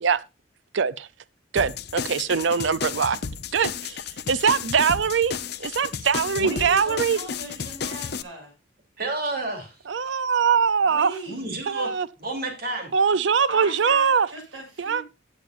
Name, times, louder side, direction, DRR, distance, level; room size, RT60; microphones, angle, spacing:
voice 1, 0.7-1.1 1.5-3.2 3.5-4.0 4.3-7.2 9.9-11.2 11.7-12.1 12.9-14.3 14.8-15.0, right 6 dB, 70° right, 0.5 m, -22 dB
sound 1, 1.6-8.2, left 6 dB, 55° left, 0.7 m, -33 dB
voice 2, 6.3-8.5 10.8-11.5 13.5-15.0, right 2 dB, 85° right, 6.9 m, -37 dB
voice 3, 9.0-9.7 11.3-11.9 12.2-12.9, right 2 dB, 50° right, 3.3 m, -30 dB
16.0 x 8.5 x 2.5 m
head